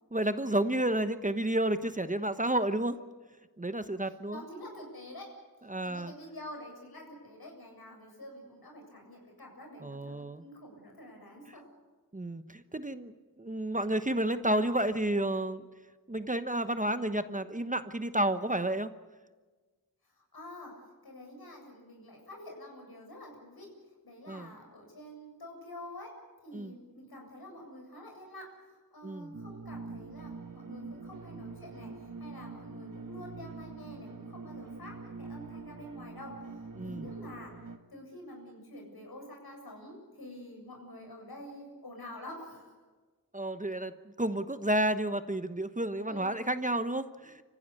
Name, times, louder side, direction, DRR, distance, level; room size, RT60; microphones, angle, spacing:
voice 1, 0.1-3.0 3.6-4.4 5.7-6.1 9.8-10.4 12.1-15.7 16.1-18.9 24.3-24.5 26.5-26.7 29.0-29.3 36.8-37.1 43.3-47.4, right 1 dB, 20° right, 11 dB, 1.0 m, -31 dB
voice 2, 4.0-5.3 5.8-11.7 20.3-20.7 21.0-23.7 24.0-26.1 26.4-28.5 28.9-31.9 32.2-37.5 37.9-42.7 46.0-46.4, left 1 dB, 75° left, 1 dB, 7.5 m, -47 dB
sound 1, 29.3-37.8, right 4 dB, 55° right, 1.5 m, -44 dB
27.5 x 15.5 x 8.4 m, 1.4 s
wide cardioid pair, 60°, 38 cm